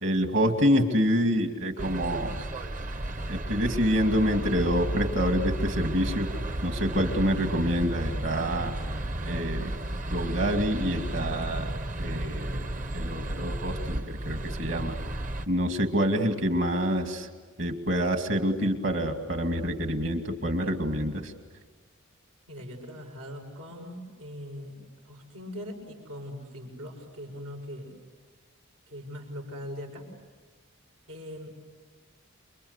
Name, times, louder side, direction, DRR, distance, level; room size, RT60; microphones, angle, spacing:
voice 1, 0.0-2.4 3.3-6.3 6.6-8.8 9.2-9.7 10.1-15.0 15.5-17.3 17.6-21.3, equal, 55° right, 5 dB, 2.4 m, -27 dB
sound 1, 1.8-15.5, right 1 dB, 35° right, 0.9 m, -33 dB
voice 2, 22.5-24.8 25.0-27.9 28.9-30.1 31.1-31.5, equal, 90° right, 1 dB, 6.4 m, -41 dB
28.5 x 24.0 x 8.2 m, 1.4 s
head